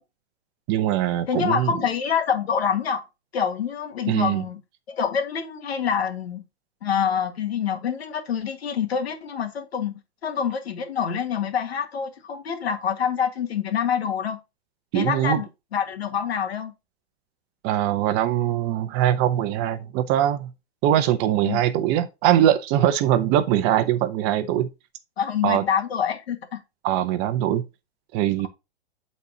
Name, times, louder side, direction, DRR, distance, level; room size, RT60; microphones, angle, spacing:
voice 1, 0.7-1.7 4.1-4.4 14.9-15.4 17.6-20.5 20.8-24.7 25.4-25.6 26.8-27.6 28.1-28.5, right 11 dB, 30° right, 0.8 m, -22 dB
voice 2, 1.3-3.0 3.3-4.6 4.9-6.4 6.8-14.4 14.9-16.7 21.5-21.6 25.2-26.6, left 7 dB, 70° left, 1.9 m, -26 dB
11.5 x 4.3 x 2.9 m
hypercardioid pair, 120°, 32 cm